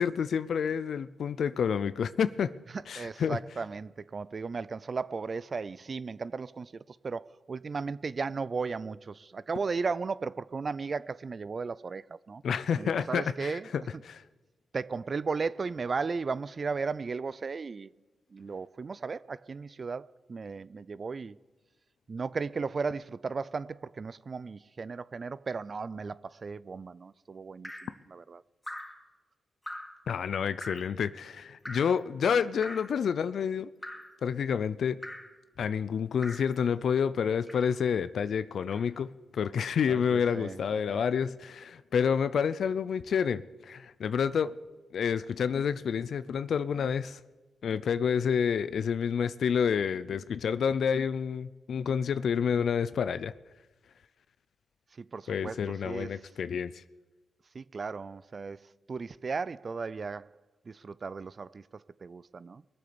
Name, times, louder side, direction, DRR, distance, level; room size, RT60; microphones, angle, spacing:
voice 1, 0.0-2.5 2.9-3.4 12.4-14.2 30.1-33.7 34.2-35.0 35.6-44.5 44.9-47.2 47.6-53.3 55.3-56.8, left 7 dB, 75° left, 0.5 m, -29 dB
voice 2, 3.0-12.4 12.7-13.7 14.7-17.9 18.3-21.4 22.1-28.4 39.9-40.6 40.9-41.0 55.0-56.2 57.5-60.3 60.7-61.6 62.0-62.6, right 4 dB, 50° right, 0.4 m, -35 dB
Drip, 27.6-28.0 28.6-29.0 29.7-30.0 30.6-30.9 31.7-32.0 32.6-33.0 33.8-34.2 35.0-35.4 36.2-36.5 37.5-37.8 38.7-38.9, left 1 dB, 10° left, 2.4 m, -42 dB
21.5 x 7.8 x 7.0 m
cardioid pair, 60°, 0 cm